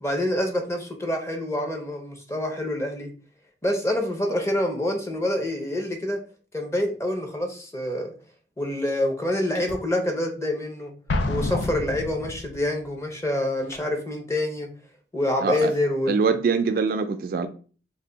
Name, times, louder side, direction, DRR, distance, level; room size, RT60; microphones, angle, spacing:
voice 1, 0.0-3.1 3.6-6.2 6.5-8.1 8.6-10.9 11.3-14.7 15.1-16.1, left 1 dB, 15° left, 0.6 m, -26 dB
sound 1, 9.5-9.9 11.5-11.8 13.5-13.9 15.5-15.8, left 2 dB, 45° left, 1.0 m, -41 dB
Explosion, 11.1-12.7, left 2 dB, 85° left, 0.5 m, -28 dB
voice 2, 15.4-15.7 16.1-17.5, right 5 dB, 55° right, 0.3 m, -23 dB
3.3 x 2.1 x 3.8 m
head